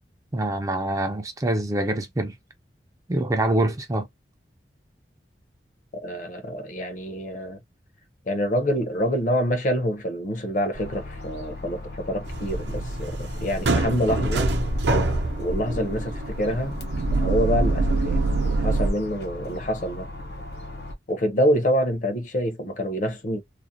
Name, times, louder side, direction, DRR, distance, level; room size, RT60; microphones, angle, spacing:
voice 1, 0.3-2.3 3.1-4.1, right 1 dB, 20° right, 0.3 m, -25 dB
voice 2, 5.9-7.6 8.3-14.5 15.4-16.8 17.2-20.1 21.1-23.4, equal, 45° left, 0.5 m, -26 dB
sound 1, 10.7-20.9, left 2 dB, 70° left, 0.9 m, -38 dB
sound 2, 12.3-18.9, right 2 dB, 75° right, 0.6 m, -25 dB
2.5 x 2.0 x 2.6 m
head